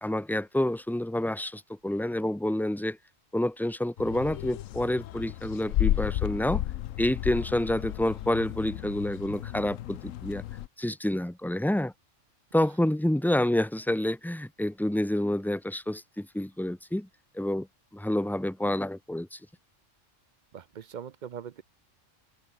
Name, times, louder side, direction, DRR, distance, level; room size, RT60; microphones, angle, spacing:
voice 1, 0.0-3.0 3.3-6.6 7.0-10.4 10.8-11.9 12.5-17.1 17.3-17.7 17.9-19.4, left 1 dB, ahead, 0.6 m, -28 dB
sound 1, 4.0-10.7, left 13 dB, 85° left, 1.0 m, -33 dB
voice 2, 20.5-21.6, right 8 dB, 55° right, 0.5 m, -41 dB
omnidirectional pair, 1.3 m